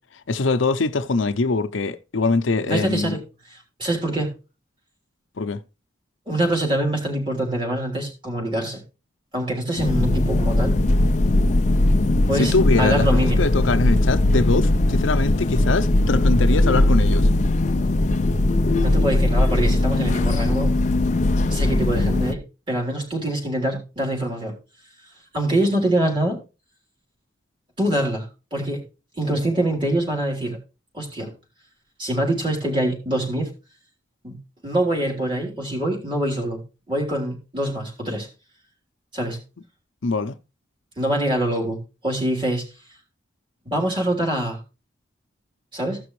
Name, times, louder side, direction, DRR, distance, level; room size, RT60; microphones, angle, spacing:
voice 1, 0.3-3.2 5.4-5.6 12.3-17.3 40.0-40.4, left 3 dB, 85° left, 0.6 m, -23 dB
voice 2, 2.7-3.2 3.5-4.3 6.3-8.8 9.3-10.8 12.3-13.4 18.8-20.7 21.5-24.5 25.3-26.4 27.8-28.3 28.5-28.8 29.2-30.6 30.9-31.3 32.0-33.5 34.2-34.4 34.6-36.6 36.9-38.3 39.1-39.4 41.0-42.6 43.7-44.6 45.7-46.0, right 1 dB, 25° right, 3.5 m, -24 dB
sound 1, 9.8-22.3, left 1 dB, 40° left, 0.5 m, -19 dB
16.0 x 6.0 x 3.1 m
head